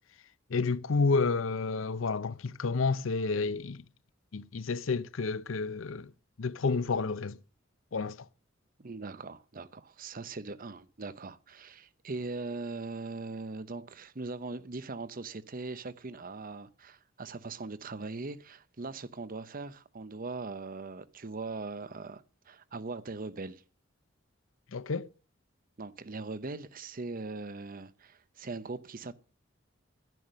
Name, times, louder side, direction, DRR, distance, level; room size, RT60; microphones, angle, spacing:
voice 1, 0.5-3.8 4.3-6.1 6.4-7.4 7.9-8.2 24.7-25.1, left 4 dB, 85° left, 0.6 m, -30 dB
voice 2, 8.8-23.6 25.8-29.1, right 3 dB, 45° right, 0.8 m, -40 dB
11.0 x 10.5 x 6.4 m
head